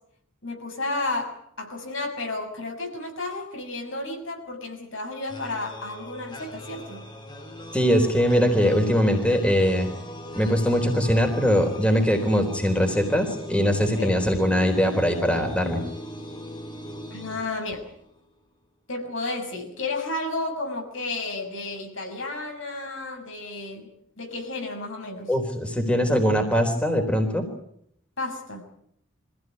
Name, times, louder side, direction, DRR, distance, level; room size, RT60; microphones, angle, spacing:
voice 1, 0.4-7.1 14.0-14.2 17.1-17.9 18.9-23.9 24.2-25.3 28.2-28.7, left 2 dB, 75° left, 3 dB, 6.5 m, -32 dB
sound 1, 5.3-18.2, equal, 25° left, 2.9 m, -40 dB
voice 2, 7.7-9.9 10.4-15.8 25.3-27.4, equal, 5° left, 4 dB, 4.0 m, -21 dB
25.5 x 16.0 x 9.6 m, 0.71 s
head